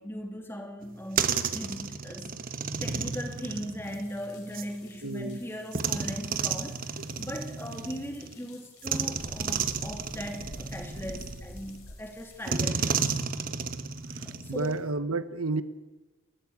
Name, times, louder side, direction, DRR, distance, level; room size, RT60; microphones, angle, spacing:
voice 1, 0.0-2.4 2.8-6.8 7.2-13.1 14.2-14.8, equal, 10° left, 4 dB, 2.6 m, -39 dB
sound 1, 0.8-4.7 5.7-8.3 8.8-11.8 12.5-14.9, right 6 dB, 40° right, 1.1 m, -32 dB
sound 2, 3.8-12.7, left 1 dB, 85° left, 4.3 m, -50 dB
voice 2, 5.0-5.4 14.1-15.6, right 3 dB, 75° right, 13 dB, 1.2 m, -31 dB
29.5 x 13.0 x 8.6 m, 1.2 s
head